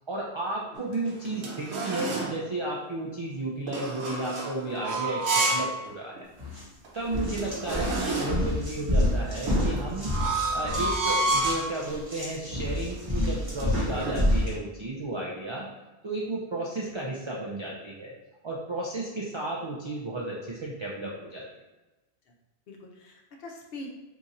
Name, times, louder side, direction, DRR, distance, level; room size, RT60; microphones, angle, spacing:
voice 1, 0.1-6.2 6.9-10.1 10.5-15.7 16.0-18.1 18.4-21.5, right 2 dB, 45° right, -4 dB, 0.3 m, -33 dB
sound 1, 0.7-2.4 3.7-5.7 6.1-6.2 6.8-6.9 7.1-8.5 9.5-11.7 12.4-12.6 12.9-14.2, right 2 dB, 80° right, 1.0 m, -30 dB
sound 2, 6.4-6.6 7.0-14.5, left 1 dB, 20° right, 0.9 m, -28 dB
voice 2, 22.7-23.9, left 2 dB, 70° left, 0 dB, 0.9 m, -44 dB
2.8 x 2.5 x 4.0 m, 1.1 s
omnidirectional pair, 1.1 m